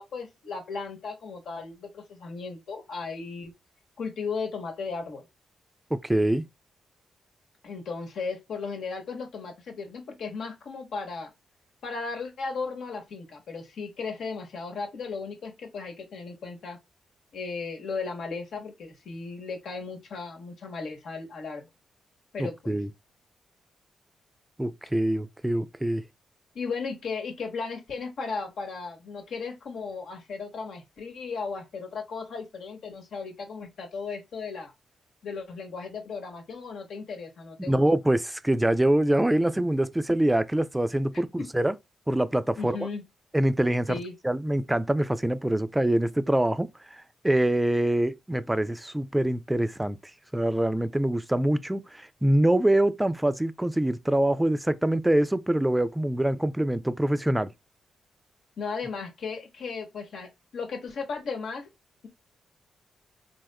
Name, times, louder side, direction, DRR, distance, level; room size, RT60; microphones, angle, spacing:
voice 1, 0.0-3.5 4.0-5.3 7.6-11.3 11.8-16.8 17.3-21.7 22.3-22.8 26.5-34.7 35.2-37.8 41.4-41.5 42.6-43.0 43.9-44.1 58.6-61.7, left 4 dB, 75° left, 1.1 m, -36 dB
voice 2, 5.9-6.4 22.4-22.9 24.6-26.0 37.7-41.3 41.5-41.7 42.1-42.9 43.3-50.0 50.3-57.5, right 1 dB, 10° right, 0.4 m, -25 dB
3.5 x 2.8 x 2.2 m
cardioid pair, 65°, 0 cm